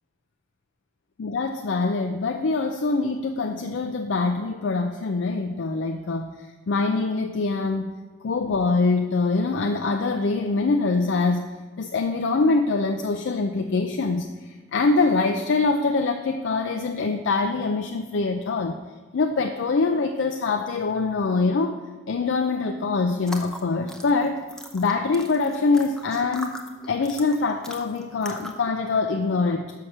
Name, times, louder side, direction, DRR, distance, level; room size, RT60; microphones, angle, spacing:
voice 1, 1.2-6.3 6.7-7.9 8.2-18.8 19.1-21.8 22.1-24.4 24.7-29.7, left 3 dB, 90° left, 5 dB, 0.5 m, -24 dB
sound 1, 23.2-28.7, left 1 dB, 5° left, 0.6 m, -41 dB
6.3 x 5.7 x 6.5 m, 1.3 s
head